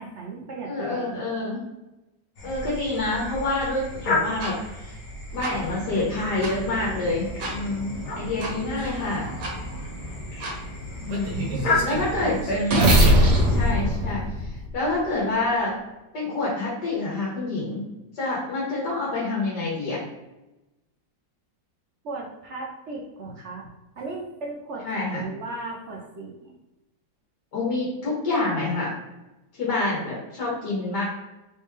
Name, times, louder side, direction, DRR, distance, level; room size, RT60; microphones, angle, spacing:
voice 1, 0.0-1.2 11.4-12.3 22.0-23.7 24.0-26.5, right 3 dB, 60° right, -1 dB, 0.8 m, -36 dB
voice 2, 0.7-1.6 2.4-5.0 5.3-7.3 7.5-9.3 11.0-11.4 11.8-13.0 13.5-15.8 16.1-17.8 18.1-20.0 24.9-25.3 27.5-28.9 29.5-31.0, left 2 dB, 80° left, -5 dB, 1.9 m, -27 dB
sound 1, 2.4-13.7, left 2 dB, 65° left, 1.6 m, -33 dB
sound 2, 4.4-4.5 5.4-5.5 6.4-6.5 7.4-7.5 8.4-8.5 9.4-9.5 10.4-10.5 11.1-15.0, equal, 80° right, 1.7 m, -22 dB
sound 3, 5.3-12.6, right 1 dB, 45° left, 1.7 m, -38 dB
4.2 x 3.4 x 3.2 m, 1.0 s
omnidirectional pair, 1.8 m